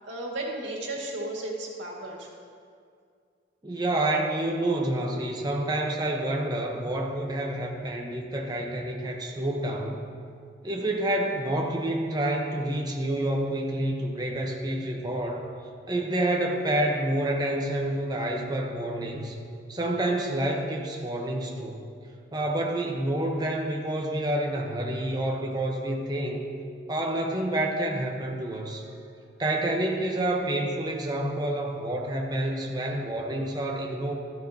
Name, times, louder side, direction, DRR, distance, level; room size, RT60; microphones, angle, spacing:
voice 1, 0.0-2.3, right 1 dB, 85° right, -2 dB, 2.0 m, -34 dB
voice 2, 3.6-10.0 10.6-15.5 15.9-19.4 19.7-21.9 22.3-26.4 26.9-28.8 29.4-34.1, right 1 dB, 20° right, 0 dB, 0.9 m, -28 dB
13.5 x 13.0 x 2.8 m, 2.3 s
head